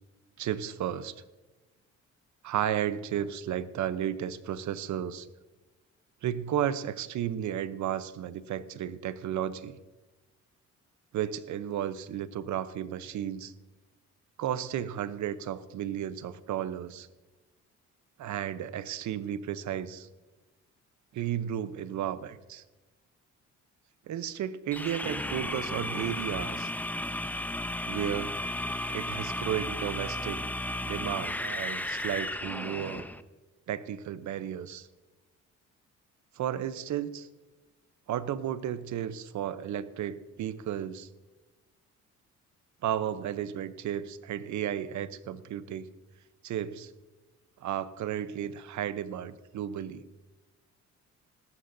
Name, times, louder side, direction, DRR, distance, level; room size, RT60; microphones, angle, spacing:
voice 1, 0.4-1.1 2.4-5.3 6.2-9.8 11.1-13.5 14.4-17.1 18.2-20.1 21.1-22.6 24.1-26.7 27.9-28.4 28.9-30.4 30.8-33.1 33.7-34.9 36.4-37.3 38.1-41.1 42.8-45.9 46.4-46.9 47.6-50.1, right 10 dB, 70° right, 13 dB, 0.8 m, -33 dB
sound 1, 24.7-33.2, left 1 dB, 5° left, 0.7 m, -34 dB
17.5 x 14.5 x 2.7 m, 1.1 s
cardioid pair, 90°, 30 cm